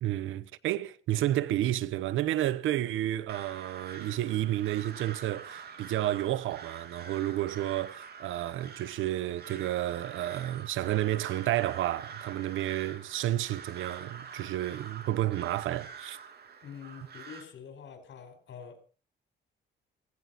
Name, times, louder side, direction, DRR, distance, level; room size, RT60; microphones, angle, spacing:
voice 1, 0.0-16.2, right 14 dB, 85° right, 0.9 m, -31 dB
Crow, 3.3-17.4, right 6 dB, 55° right, 3.0 m, -46 dB
voice 2, 16.6-18.8, left 7 dB, 65° left, 5.2 m, -46 dB
16.5 x 16.5 x 4.1 m
cardioid pair, 90°, 20 cm